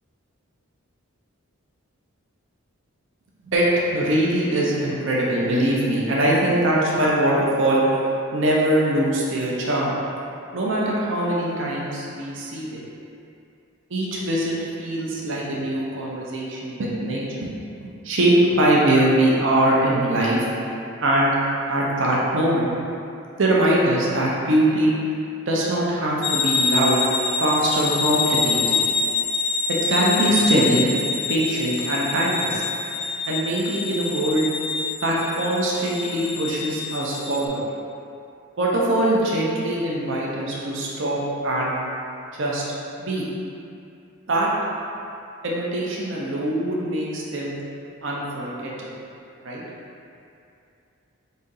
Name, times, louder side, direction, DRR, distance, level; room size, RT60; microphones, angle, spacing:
voice 1, 3.4-7.8 8.3-10.0 10.5-12.8 13.9-17.5 18.0-20.5 21.0-21.4 21.7-22.7 23.4-24.9 25.5-27.1 27.4-28.8 29.9-30.9 31.3-32.6 33.2-34.5 35.0-37.6 38.6-41.7 42.4-42.6 43.0-43.3 44.3-44.5 45.4-47.5 48.0-48.9 49.4-49.6, right 1 dB, 60° right, -5 dB, 0.6 m, -22 dB
sound 1, 26.2-37.5, left 4 dB, 50° left, 0.3 m, -26 dB
4.1 x 2.7 x 3.9 m, 2.6 s
head